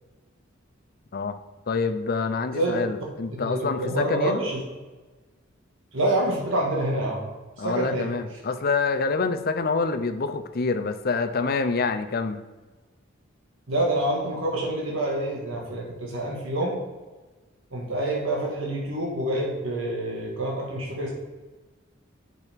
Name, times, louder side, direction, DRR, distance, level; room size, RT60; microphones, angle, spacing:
voice 1, 1.7-4.4 7.6-12.4, left 4 dB, 50° left, 9 dB, 0.6 m, -26 dB
voice 2, 3.3-4.6 5.9-7.3 7.6-8.1 13.7-16.8 17.7-21.1, right 1 dB, 75° right, -2 dB, 1.7 m, -27 dB
8.2 x 6.1 x 3.6 m, 1.2 s
head